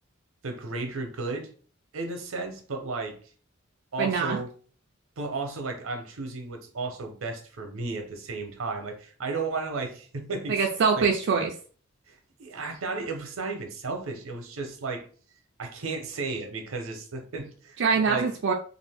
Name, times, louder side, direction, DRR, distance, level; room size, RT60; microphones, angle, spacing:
voice 1, 0.4-1.5 1.9-3.2 3.9-4.5 5.2-10.6 10.9-11.1 12.1-15.1 15.6-18.3, right 3 dB, 90° right, 0.7 m, -34 dB
voice 2, 4.0-4.4 10.5-11.5 17.8-18.5, right 5 dB, 60° right, 0.4 m, -24 dB
2.6 x 2.5 x 3.4 m
head